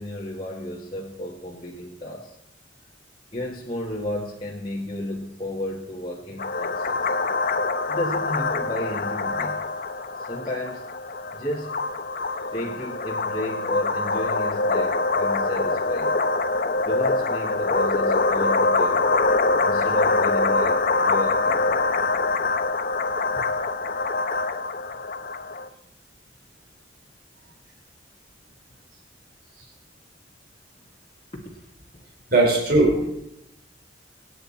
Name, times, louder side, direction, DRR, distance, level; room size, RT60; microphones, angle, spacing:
voice 1, 0.0-2.4 3.3-7.2 7.9-9.6 10.2-10.8 11.3-11.8 12.5-16.2 16.8-19.2 19.6-21.8 31.3-31.7, left 1 dB, 30° left, -4 dB, 1.6 m, -33 dB
sound 1, 6.4-25.7, left 3 dB, 50° left, 0.8 m, -24 dB
voice 2, 32.3-33.1, right 2 dB, 55° right, -1 dB, 4.7 m, -18 dB
26.0 x 9.1 x 4.3 m, 0.81 s
head